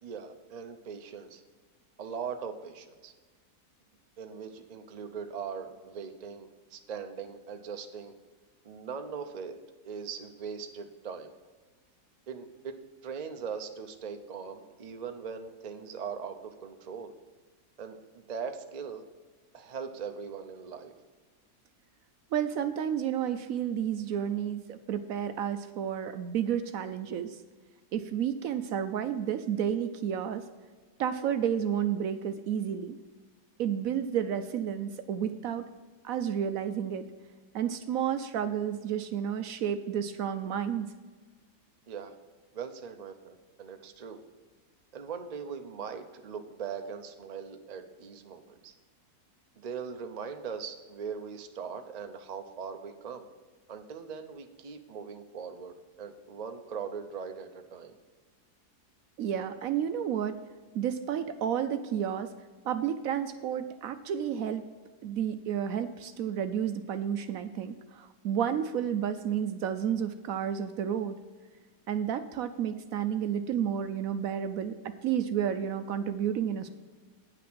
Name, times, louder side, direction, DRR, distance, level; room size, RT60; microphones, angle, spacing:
voice 1, 0.0-1.4 2.0-3.1 4.2-8.1 8.6-9.6 9.8-11.3 12.3-12.8 13.0-17.1 17.8-19.0 19.5-20.9 41.9-42.1 42.5-44.2 44.9-48.7 49.6-53.3 53.7-58.0, right 6 dB, 50° right, 6 dB, 0.5 m, -40 dB
voice 2, 22.3-27.4 27.9-30.4 31.0-33.0 33.6-35.6 36.0-37.1 37.5-40.9 59.2-60.4 60.7-62.3 62.6-64.6 65.0-71.2 71.9-76.7, right 9 dB, 70° right, 10 dB, 0.9 m, -31 dB
9.2 x 6.0 x 6.1 m, 1.4 s
omnidirectional pair, 1.7 m